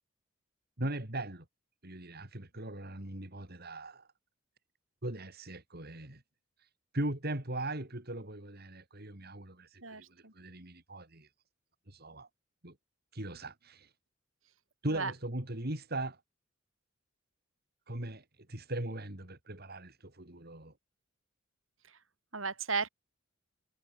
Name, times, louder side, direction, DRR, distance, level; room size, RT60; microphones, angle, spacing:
voice 1, 0.8-1.5 1.8-4.1 5.0-6.2 6.9-11.3 11.9-12.3 12.6-12.8 13.1-13.9 14.8-16.2 17.9-20.7, right 1 dB, 50° right, 3.8 m, -39 dB
voice 2, 9.8-10.3 14.9-15.1 22.3-22.9, right 4 dB, 85° right, 8.0 m, -34 dB
head